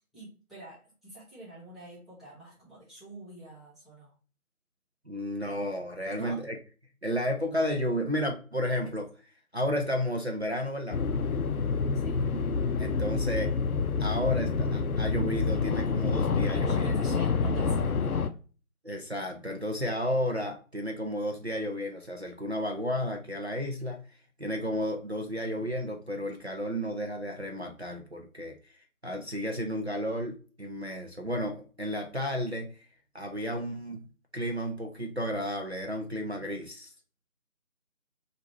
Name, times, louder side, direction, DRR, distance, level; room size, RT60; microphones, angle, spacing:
voice 1, 0.1-4.1 6.1-6.4 11.9-12.3 16.5-18.4, right 2 dB, ahead, -12 dB, 0.7 m, -47 dB
voice 2, 5.1-6.6 7.0-9.1 9.5-11.0 12.8-13.5 14.0-16.9 18.8-24.0 24.4-28.6 29.0-32.8 33.1-34.1 34.3-36.9, equal, 50° right, 1 dB, 0.5 m, -32 dB
sound 1, 10.9-18.3, left 4 dB, 80° left, 0.5 m, -28 dB
3.1 x 2.5 x 4.0 m, 0.37 s
figure-of-eight pair, 165°, 43 cm